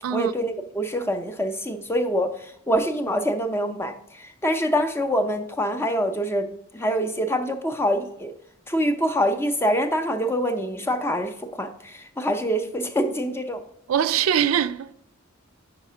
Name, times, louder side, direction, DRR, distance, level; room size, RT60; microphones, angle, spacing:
voice 1, 0.1-6.5 6.7-8.3 8.7-13.6, equal, 10° left, 0.5 m, -25 dB
voice 2, 13.9-14.9, right 9 dB, 75° right, 0.4 m, -22 dB
5.3 x 4.9 x 5.6 m
head